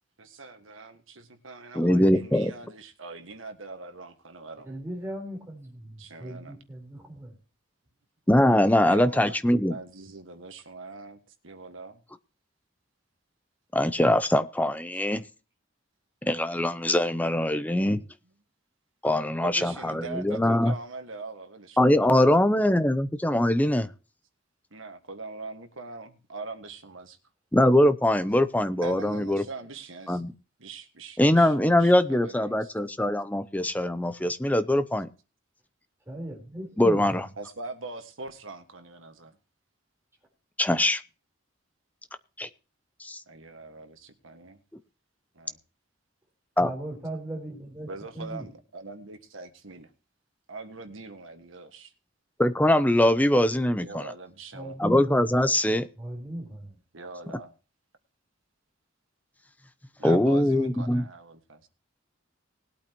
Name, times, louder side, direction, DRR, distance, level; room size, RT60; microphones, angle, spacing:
voice 1, 0.2-4.7 6.0-6.6 8.8-9.4 9.7-11.2 11.4-12.0 19.4-22.6 24.7-27.2 28.8-30.2 30.6-32.7 37.4-39.4 43.3-44.6 45.3-45.6 47.8-49.9 50.5-51.9 53.8-54.8 56.9-57.5 60.0-61.7, right 3 dB, 80° right, 7 dB, 1.6 m, -42 dB
voice 2, 1.7-2.5 8.3-9.8 13.7-15.2 16.3-18.0 19.0-20.7 21.8-23.9 27.5-29.4 30.1-30.3 31.2-35.1 36.8-37.3 40.6-41.0 42.4-42.5 43.0-43.2 46.6-46.7 52.4-54.1 54.8-55.9 60.0-61.0, left 1 dB, 10° left, 12 dB, 0.6 m, -22 dB
voice 3, 4.6-7.4 36.1-37.2 46.6-48.5 54.5-55.2 56.0-56.7, right 1 dB, 15° right, 0 dB, 4.0 m, -37 dB
20.0 x 8.6 x 3.0 m, 0.35 s
head